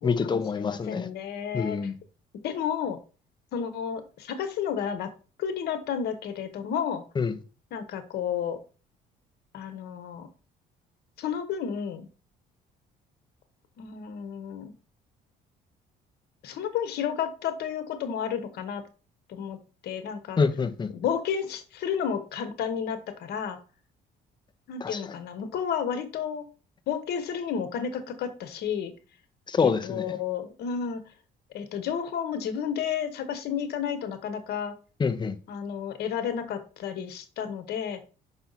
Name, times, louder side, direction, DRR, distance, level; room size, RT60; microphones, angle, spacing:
voice 1, 0.0-1.1 1.5-2.0 7.2-7.3 20.4-20.9 24.8-25.1 29.5-30.2 35.0-35.4, left 5 dB, 25° left, 0.8 m, -26 dB
voice 2, 0.5-1.8 2.4-3.0 3.5-5.1 5.4-7.0 7.7-8.6 9.5-10.3 11.2-12.1 13.8-14.7 16.4-18.8 19.3-19.6 19.8-20.4 20.9-23.6 24.7-26.5 26.9-28.9 29.6-31.0 31.5-34.7 35.5-38.0, left 8 dB, 75° left, 1.3 m, -31 dB
5.9 x 5.6 x 4.1 m
cardioid pair, 110°, 17 cm